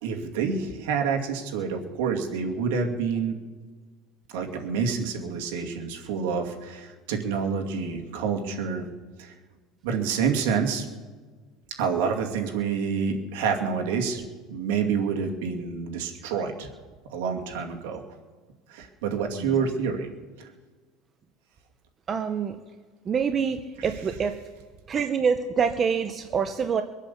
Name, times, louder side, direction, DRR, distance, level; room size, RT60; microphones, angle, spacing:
voice 1, 0.0-3.4 4.3-8.8 9.2-9.3 9.8-10.9 11.8-14.2 14.5-16.7 17.1-18.0 18.7-20.1 23.8-23.9, right 6 dB, 90° right, 2 dB, 2.4 m, -28 dB
voice 2, 22.1-22.6 23.1-23.6 23.8-24.3 24.9-26.8, right 6 dB, 25° right, 8 dB, 0.7 m, -25 dB
24.0 x 8.2 x 7.1 m, 1.4 s
cardioid pair, 150°, 0 cm